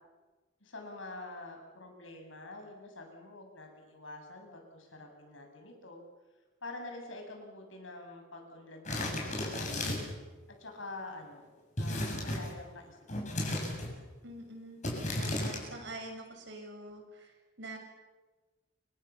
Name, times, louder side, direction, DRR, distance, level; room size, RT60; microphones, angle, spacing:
voice 1, 0.6-6.0 6.6-10.0 10.6-11.5 11.8-13.3, left 2 dB, 80° left, 3 dB, 7.8 m, -46 dB
sound 1, 8.9-10.2 11.8-12.5 13.1-14.0 14.8-15.6, left 1 dB, 35° left, 7.7 m, -34 dB
voice 2, 14.2-14.8 15.2-17.3 17.6-17.8, right 1 dB, 60° right, 3 dB, 7.0 m, -45 dB
29.0 x 26.0 x 7.2 m, 1.2 s
head